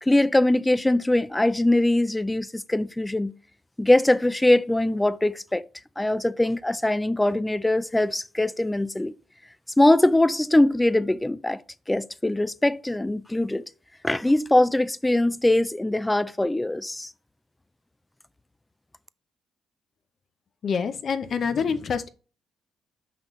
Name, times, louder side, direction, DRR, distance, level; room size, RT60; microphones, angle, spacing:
voice 1, 0.0-3.3 3.8-5.6 6.0-9.1 9.8-11.6 11.9-13.6 14.0-17.1, left 1 dB, 10° left, 0.4 m, -22 dB
voice 2, 20.6-22.1, left 6 dB, 55° left, 0.6 m, -26 dB
5.8 x 5.4 x 3.1 m
cardioid pair, 90°, 0 cm